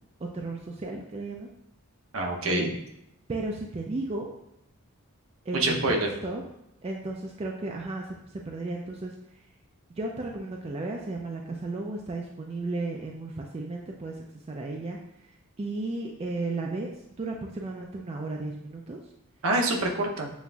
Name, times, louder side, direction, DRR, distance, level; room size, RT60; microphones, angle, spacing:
voice 1, 0.2-1.5 2.5-2.7 3.3-4.3 5.5-5.6 5.9-6.4 6.8-9.4 9.9-15.0 15.6-19.0, right 2 dB, 25° right, 0 dB, 0.3 m, -34 dB
voice 2, 2.1-2.7 5.5-6.1 19.4-20.3, right 2 dB, 70° right, 2 dB, 0.7 m, -26 dB
7.0 x 2.5 x 2.3 m, 0.82 s
head